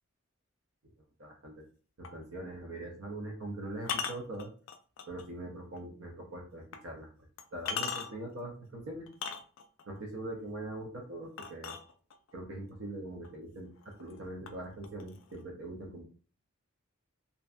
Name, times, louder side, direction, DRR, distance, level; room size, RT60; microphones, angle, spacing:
voice 1, 1.2-1.6 2.0-4.5 5.1-9.1 9.9-11.7 12.3-16.0, right 1 dB, 85° right, 1 dB, 0.6 m, -42 dB
sound 1, 2.0-2.2 3.8-5.2 5.8-5.9 6.7-6.8 7.4-8.3 9.1-9.8 11.4-12.3 13.2-13.3 13.8-14.2 14.5-15.4, left 6 dB, 70° left, 0.3 m, -38 dB
2.6 x 2.2 x 2.4 m, 0.39 s
head